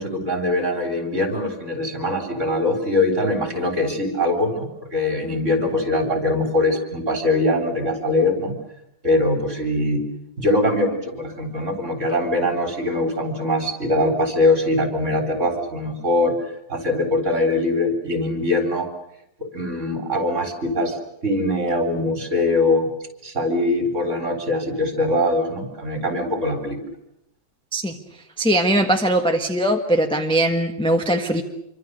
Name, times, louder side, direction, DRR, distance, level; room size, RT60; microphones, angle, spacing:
voice 1, 0.0-8.5 9.0-10.0 10.4-18.9 19.4-22.9 23.2-26.8, left 1 dB, 40° right, 5 dB, 4.4 m, -22 dB
voice 2, 28.4-31.4, right 1 dB, 5° left, 3 dB, 1.2 m, -20 dB
27.0 x 24.5 x 6.7 m, 0.81 s
omnidirectional pair, 2.0 m